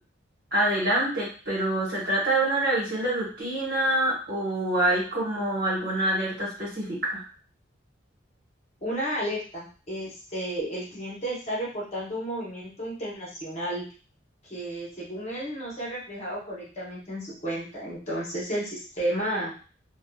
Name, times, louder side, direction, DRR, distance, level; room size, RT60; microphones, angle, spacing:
voice 1, 0.5-7.2, right 1 dB, 55° right, -5 dB, 1.2 m, -26 dB
voice 2, 8.8-13.9 14.5-19.5, right 1 dB, 35° left, -6 dB, 1.0 m, -32 dB
2.7 x 2.3 x 2.3 m, 0.38 s
head